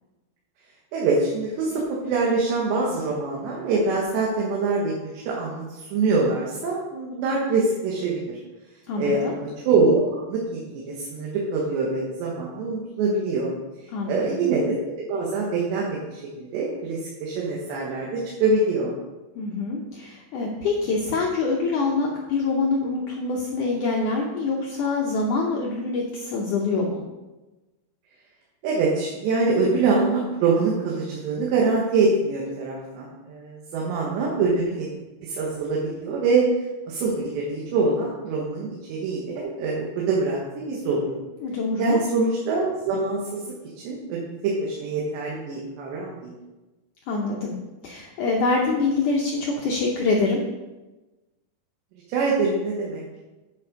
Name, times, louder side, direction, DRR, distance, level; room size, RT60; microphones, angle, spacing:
voice 1, 0.9-8.4 9.0-13.5 14.1-18.9 28.6-34.9 35.2-36.5 36.9-41.2 41.8-46.3 52.1-53.0, right 3 dB, 85° right, -3 dB, 3.6 m, -24 dB
voice 2, 8.9-9.4 13.9-14.5 19.3-27.0 41.4-42.0 47.1-47.6 47.8-50.4, left 3 dB, 85° left, -1 dB, 1.8 m, -25 dB
8.8 x 7.2 x 5.3 m, 1.1 s
omnidirectional pair, 4.9 m